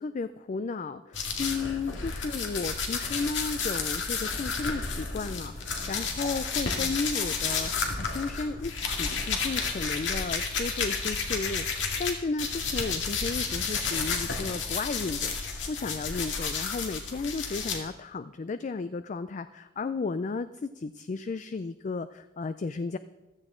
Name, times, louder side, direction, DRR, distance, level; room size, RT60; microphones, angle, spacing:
voice 1, 0.0-15.4 15.7-23.0, left 4 dB, 40° left, 12 dB, 0.4 m, -34 dB
sound 1, 1.1-12.1 12.4-17.8, left 5 dB, 70° left, 2.0 m, -31 dB
15.0 x 13.0 x 3.8 m, 1.1 s
head